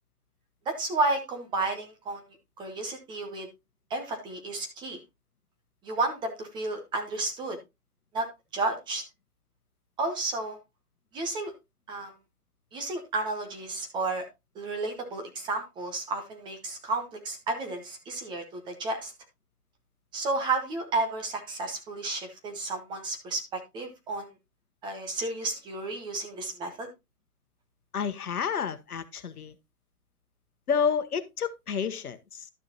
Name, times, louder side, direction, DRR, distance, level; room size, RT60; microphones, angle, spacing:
voice 1, 0.7-3.5 3.9-5.0 5.8-7.6 8.1-8.3 8.5-9.0 10.0-10.6 11.1-11.5 11.9-12.1 12.7-14.3 14.5-19.1 20.1-24.3 24.8-26.9, right 3 dB, 10° right, 0.9 m, -32 dB
voice 2, 27.9-29.6 30.7-32.5, left 6 dB, 70° left, 1.2 m, -30 dB
12.0 x 6.4 x 2.8 m
figure-of-eight pair, 135°, 46 cm